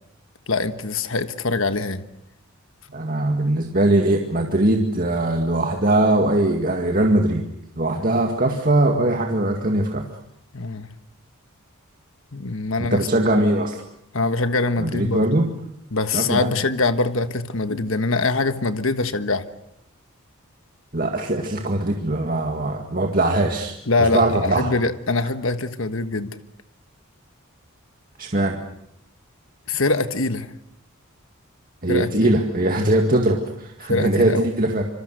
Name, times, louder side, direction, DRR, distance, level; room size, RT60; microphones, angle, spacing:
voice 1, 0.5-2.0 10.5-10.9 12.3-13.1 14.1-15.2 15.9-19.4 23.9-26.4 29.7-30.5 31.9-32.3 33.9-34.5, left 3 dB, 60° left, 10 dB, 1.4 m, -23 dB
voice 2, 2.9-7.4 7.8-10.0 12.8-13.8 14.8-15.5 16.1-16.5 20.9-23.7 24.0-24.7 28.2-28.6 31.8-34.8, right 1 dB, 40° right, 3 dB, 2.1 m, -21 dB
26.5 x 26.0 x 6.6 m, 0.77 s
head